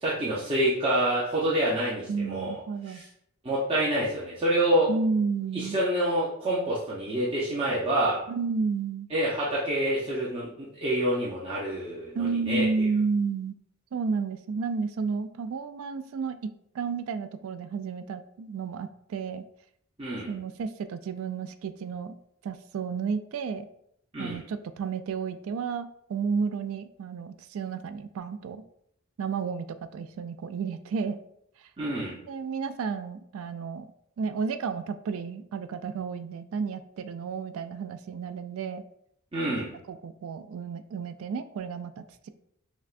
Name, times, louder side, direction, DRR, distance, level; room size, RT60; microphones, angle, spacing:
voice 1, 0.0-2.6 2.9-3.0 3.4-4.9 5.5-8.2 9.1-12.7 20.0-20.3 24.1-24.4 31.8-32.2 39.3-39.7, right 1 dB, 25° right, -8 dB, 0.7 m, -27 dB
voice 2, 2.1-3.0 4.9-5.8 8.3-9.1 12.2-13.6 13.9-19.4 20.3-22.2 22.4-23.7 24.2-28.6 29.2-29.7 29.9-31.2 32.3-33.9 34.2-38.8 39.9-42.3, right 5 dB, 75° right, 11 dB, 0.3 m, -31 dB
5.9 x 2.2 x 2.5 m, 0.72 s
head